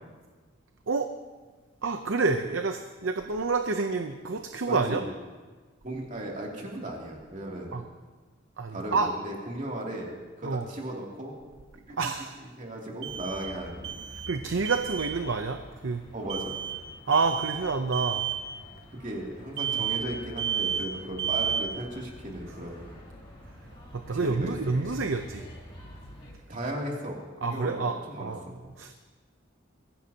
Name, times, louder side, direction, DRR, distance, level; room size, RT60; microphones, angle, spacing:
voice 1, 1.8-5.0 7.7-7.8 8.6-9.1 10.4-10.7 12.0-12.4 14.1-16.0 17.1-18.3 23.9-25.5 27.4-29.0, right 4 dB, 75° right, 7 dB, 0.7 m, -28 dB
voice 2, 4.7-5.0 5.8-7.8 8.7-10.1 10.4-11.3 11.9-12.0 12.6-14.0 16.1-16.6 18.9-22.9 24.2-24.5 24.9-25.0 26.5-28.6, right 1 dB, 40° right, -2 dB, 2.8 m, -36 dB
fire house alarm, 9.8-9.9 13.0-13.6 13.8-14.4 14.7-15.2 16.3-16.8 17.1-17.6 17.9-18.4 19.6-20.1 20.4-20.9 21.2-21.8, right 8 dB, 60° right, 1.6 m, -31 dB
sound 1, 13.1-26.3, equal, 30° left, 3.4 m, -48 dB
22.0 x 15.5 x 2.9 m, 1.4 s
head